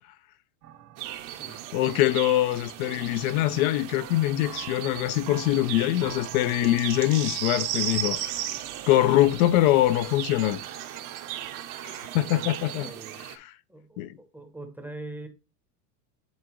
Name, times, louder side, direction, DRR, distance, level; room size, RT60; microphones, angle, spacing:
sound 1, 0.6-12.9, right 11 dB, 75° right, 1.8 m, -45 dB
sound 2, 1.0-13.4, right 12 dB, 45° right, 0.8 m, -36 dB
voice 1, 1.7-8.2 8.9-10.6 11.8-12.9 13.3-13.5 14.0-14.1, left 14 dB, 65° left, 0.6 m, -23 dB
voice 2, 5.5-6.8 12.4-12.5 12.8-13.2 13.7-15.3, right 2 dB, 5° right, 0.8 m, -43 dB
9.4 x 3.7 x 3.0 m
supercardioid pair, 135°, 46 cm